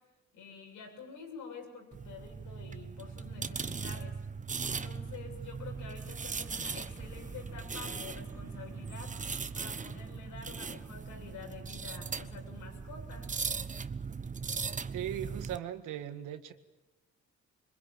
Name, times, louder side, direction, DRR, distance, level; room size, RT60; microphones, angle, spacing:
voice 1, 0.3-4.2 4.6-9.1 9.5-13.3, left 5 dB, 85° left, 2 dB, 7.3 m, -48 dB
sound 1, 1.9-15.6, right 5 dB, 25° right, 1.0 m, -39 dB
sound 2, 5.7-12.0, right 1 dB, 10° right, 1.8 m, -55 dB
voice 2, 14.9-16.5, right 10 dB, 85° right, 9 dB, 1.9 m, -38 dB
24.5 x 22.0 x 9.2 m, 1.1 s
cardioid pair, 90°, 30 cm